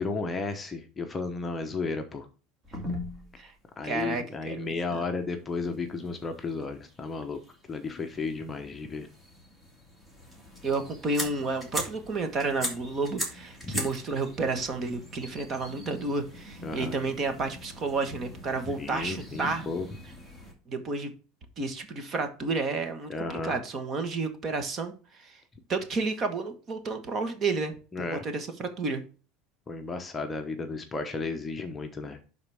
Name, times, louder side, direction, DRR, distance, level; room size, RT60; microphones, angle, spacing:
voice 1, 0.0-2.3 3.8-7.4 7.7-9.1 13.7-13.8 16.6-16.9 18.7-19.9 23.1-23.5 27.9-28.2 29.7-32.2, left 3 dB, 15° left, 5 dB, 0.9 m, -33 dB
sound 1, 2.6-3.5 4.0-4.1 4.4-4.5 5.4-20.5, equal, 10° right, 2.4 m, -41 dB
voice 2, 3.8-5.0 10.6-19.7 20.7-21.1 21.6-24.9 25.2-25.4 25.7-27.7 28.1-29.0, right 3 dB, 30° right, 8 dB, 1.4 m, -31 dB
11.5 x 4.1 x 3.5 m, 0.35 s
cardioid pair, 155°, 0 cm